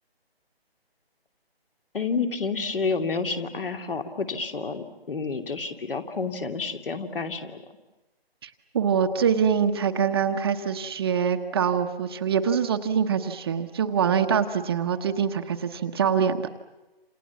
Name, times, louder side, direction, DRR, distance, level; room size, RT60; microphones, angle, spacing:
voice 1, 1.9-7.6, left 4 dB, 60° left, 6 dB, 2.9 m, -29 dB
voice 2, 8.7-16.5, right 7 dB, 25° right, 6 dB, 1.0 m, -24 dB
28.5 x 28.0 x 7.2 m, 1.1 s
figure-of-eight pair, 155°, 31 cm